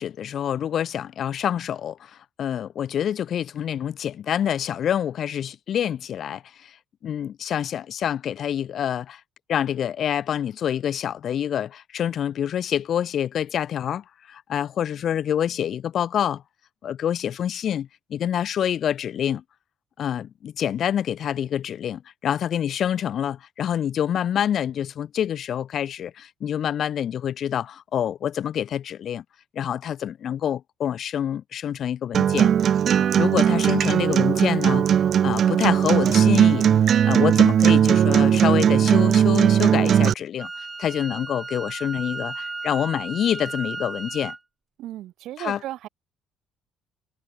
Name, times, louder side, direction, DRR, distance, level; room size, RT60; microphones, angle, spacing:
voice 1, 0.0-6.8 7.0-9.2 9.5-16.4 16.8-19.4 20.0-29.2 29.5-32.5 33.1-36.7 37.0-44.3 45.4-45.6, left 9 dB, 45° left, 0.9 m, -27 dB
Acoustic guitar, 32.1-40.1, right 9 dB, 45° right, 0.4 m, -18 dB
Wind instrument woodwind instrument, 40.4-44.4, right 3 dB, 15° right, 1.6 m, -34 dB
voice 2, 44.8-45.9, right 14 dB, 65° right, 3.7 m, -35 dB
cardioid pair, 155°, 0 cm